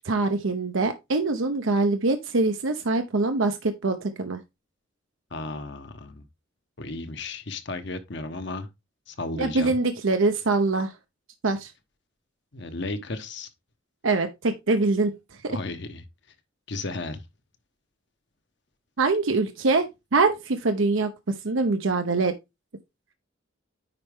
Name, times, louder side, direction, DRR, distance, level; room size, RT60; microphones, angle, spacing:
voice 1, 0.0-4.4 9.4-10.9 11.4-11.7 14.0-15.2 19.0-21.1 21.4-22.3, right 3 dB, 75° right, 0.8 m, -24 dB
voice 2, 5.3-6.2 6.8-8.7 9.1-9.8 12.5-13.5 15.5-16.0 16.7-17.2, left 2 dB, 55° left, 1.0 m, -34 dB
9.7 x 4.5 x 3.6 m
head